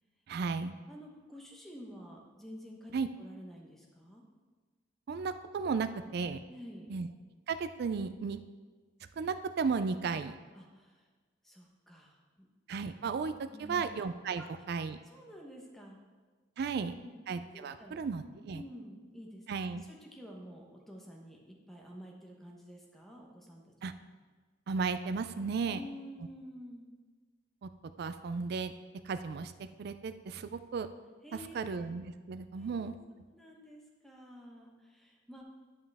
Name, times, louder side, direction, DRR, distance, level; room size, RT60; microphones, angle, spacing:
voice 1, 0.3-0.7 2.9-3.1 5.1-6.4 6.9-7.1 7.5-8.4 9.2-10.4 12.7-15.0 16.6-16.9 17.3-18.6 19.5-19.8 23.8-23.9 24.7-25.8 27.6-27.7 28.0-28.7 29.0-29.5 29.8-30.9 31.5-33.0, right 5 dB, 55° right, 11 dB, 0.3 m, -34 dB
voice 2, 0.9-4.3 6.5-6.9 10.5-11.1 11.4-12.5 13.5-13.9 14.4-14.6 15.0-16.0 17.0-17.2 17.5-18.0 18.5-19.4 19.8-23.7 25.6-26.9 31.2-31.8 32.5-32.9 33.3-35.4, equal, ahead, -1 dB, 1.0 m, -50 dB
11.0 x 5.5 x 3.5 m, 1.4 s
head